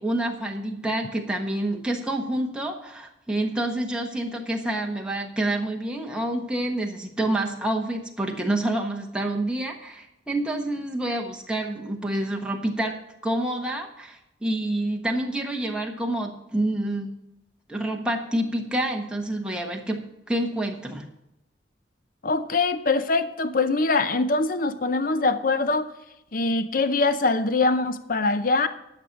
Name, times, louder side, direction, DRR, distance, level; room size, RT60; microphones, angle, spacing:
voice 1, 0.0-12.9 13.2-17.1 17.7-20.0 20.3-21.0, right 1 dB, 5° right, 1 dB, 1.3 m, -28 dB
voice 2, 22.2-25.9 26.3-28.7, left 3 dB, 45° left, 11 dB, 0.6 m, -23 dB
11.5 x 6.7 x 5.9 m, 0.86 s
head